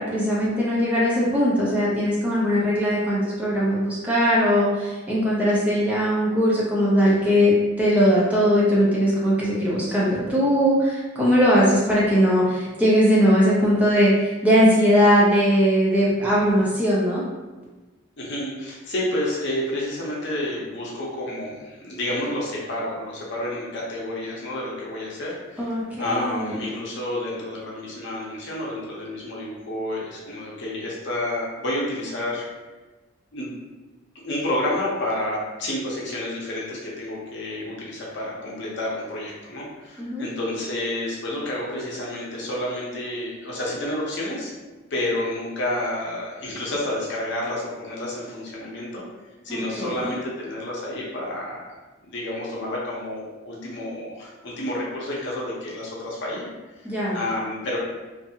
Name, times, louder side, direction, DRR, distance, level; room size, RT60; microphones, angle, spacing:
voice 1, 0.0-17.2 25.6-26.5 40.0-40.3 49.5-50.2 56.8-57.2, equal, 5° right, -7 dB, 0.5 m, -20 dB
voice 2, 18.2-32.4 33.3-33.6 34.2-44.5 44.9-49.0 49.4-51.7 52.0-56.5 56.8-57.8, left 1 dB, 55° left, -5 dB, 0.7 m, -30 dB
2.6 x 2.5 x 2.7 m, 1.2 s
head